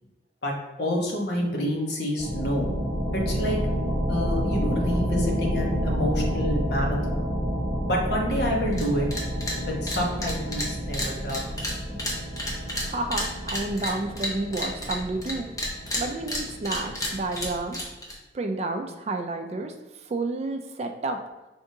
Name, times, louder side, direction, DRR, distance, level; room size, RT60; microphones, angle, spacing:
voice 1, 0.4-2.7 3.1-3.6 4.1-7.3 7.9-9.1 9.6-11.4 11.9-12.0, equal, 65° left, -1 dB, 1.1 m, -28 dB
sound 1, 2.2-17.6, equal, 20° right, 0.8 m, -29 dB
sound 2, 8.7-8.8 9.1-9.6 9.9-15.3 15.6-18.1, left 1 dB, 20° left, 0.7 m, -31 dB
voice 2, 12.8-15.5 16.0-17.9 18.3-21.2, right 2 dB, 35° right, 5 dB, 0.3 m, -30 dB
4.8 x 3.5 x 2.7 m, 1.1 s
head